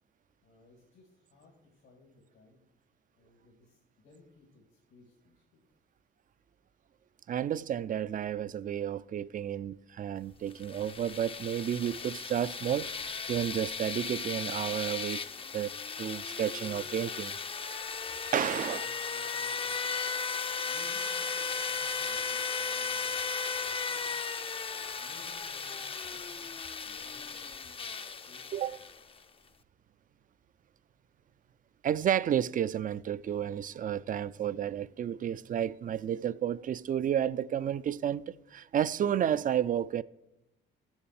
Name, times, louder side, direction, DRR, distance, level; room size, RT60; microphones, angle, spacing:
voice 1, 0.4-2.6 3.1-5.6 18.3-19.9 20.6-24.0 24.7-28.8, left 3 dB, 85° left, 2.3 m, -60 dB
voice 2, 7.3-15.2 15.5-17.4 18.3-18.8 20.5-20.6 28.5-28.8 31.8-40.0, right 10 dB, 45° right, 0.4 m, -31 dB
sound 1, 10.5-29.2, left 5 dB, 30° left, 0.5 m, -36 dB
sound 2, 12.7-13.3 14.6-15.2 16.6-17.5 18.5-19.3 20.4-20.7, right 7 dB, 65° right, 0.8 m, -59 dB
Clapping, 24.4-24.5 24.8-25.1 25.9-26.1 26.4-26.6 27.5-27.6 27.9-28.1, right 7 dB, 85° right, 1.9 m, -61 dB
7.2 x 6.9 x 7.6 m
cardioid pair, 90°, 20 cm